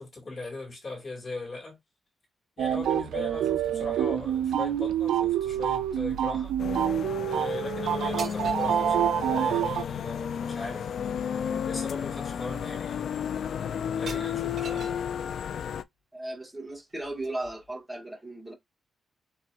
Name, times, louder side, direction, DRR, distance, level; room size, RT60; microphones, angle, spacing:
voice 1, 0.0-1.8 2.6-6.5 7.3-10.9 11.6-13.0 14.0-15.0, left 3 dB, 40° left, 2.3 m, -39 dB
sound 1, 2.6-9.8, right 10 dB, 85° right, 0.5 m, -27 dB
sound 2, 6.6-15.8, left 8 dB, 65° left, 0.3 m, -32 dB
sound 3, 8.2-8.9 10.9-11.0 11.3-11.6 12.0-12.2 12.5-13.0 13.9-15.1 16.7-17.7, right 3 dB, 60° right, 2.0 m, -44 dB
voice 2, 16.1-18.5, right 2 dB, 10° right, 1.8 m, -36 dB
4.3 x 3.3 x 2.5 m
cardioid pair, 120°, 0 cm